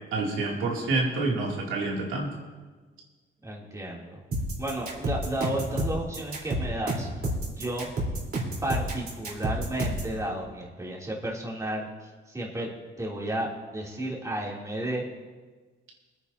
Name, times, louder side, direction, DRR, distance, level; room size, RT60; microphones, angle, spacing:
voice 1, 0.1-2.3, right 3 dB, 90° right, -3 dB, 2.8 m, -28 dB
voice 2, 3.4-4.2 4.6-7.1 7.4-7.9 8.6-11.9 12.3-12.7 13.0-15.0, right 1 dB, 15° right, -3 dB, 3.1 m, -32 dB
sound 1, 4.3-10.1, right 1 dB, 50° right, 4.0 m, -30 dB
24.0 x 9.6 x 2.8 m, 1.3 s
cardioid pair, 90°, 20 cm